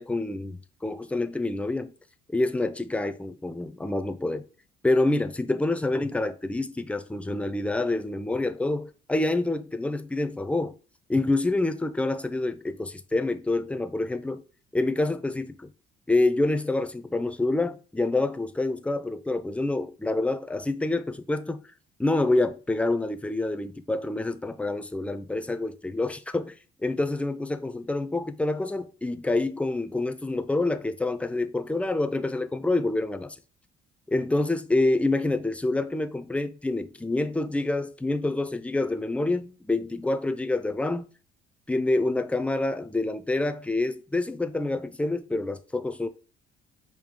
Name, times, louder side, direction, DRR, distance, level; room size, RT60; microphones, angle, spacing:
voice 1, 0.0-1.9 2.3-4.4 4.8-10.8 11.1-14.4 14.7-15.7 16.1-21.6 22.0-26.6 26.8-33.4 34.1-41.1 41.7-46.1, left 2 dB, 5° left, 0.4 m, -27 dB
5.4 x 2.7 x 3.6 m
cardioid pair, 110°, 17 cm